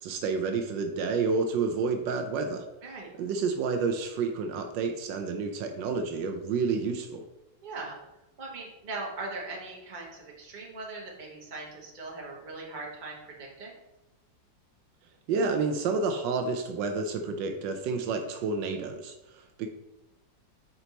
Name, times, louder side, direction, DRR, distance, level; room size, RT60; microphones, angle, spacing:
voice 1, 0.0-2.6 3.2-7.3 15.3-19.7, right 4 dB, 80° right, 6 dB, 1.3 m, -29 dB
voice 2, 7.6-8.0 8.4-13.7, right 3 dB, 30° right, -1 dB, 1.2 m, -40 dB
5.5 x 4.5 x 4.0 m, 0.94 s
omnidirectional pair, 2.0 m